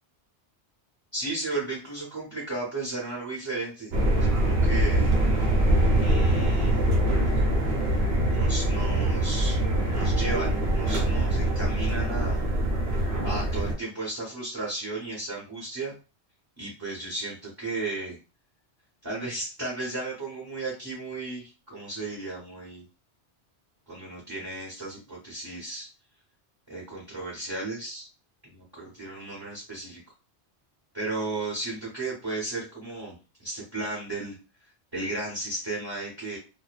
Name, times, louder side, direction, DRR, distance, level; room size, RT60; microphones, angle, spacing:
voice 1, 1.1-3.9 4.3-5.1 6.0-6.8 8.3-9.6 9.9-12.4 13.2-15.9 16.6-18.2 19.0-22.8 23.9-25.9 26.7-28.1 28.5-30.0 30.9-34.3 34.9-36.4, right 2 dB, 25° right, -5 dB, 0.9 m, -34 dB
sound 1, 3.9-13.7, right 1 dB, 65° right, 0.9 m, -23 dB
2.7 x 2.1 x 2.3 m, 0.32 s
omnidirectional pair, 1.1 m